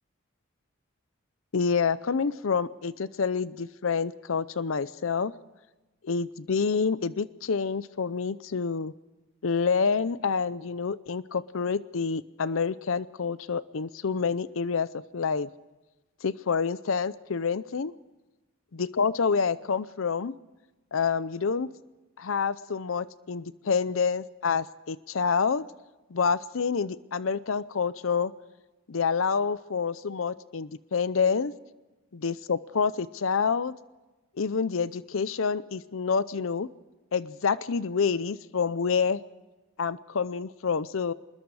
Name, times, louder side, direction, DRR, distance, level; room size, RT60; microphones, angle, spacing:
voice 1, 1.5-5.3 6.0-8.9 9.4-14.9 15.1-15.5 16.2-17.9 18.8-20.3 20.9-21.7 22.2-25.7 26.1-28.3 28.9-31.5 32.1-33.7 34.4-36.7 37.1-39.2 39.8-41.1, left 5 dB, 80° left, 16 dB, 0.6 m, -27 dB
26.0 x 21.0 x 4.8 m, 1.1 s
head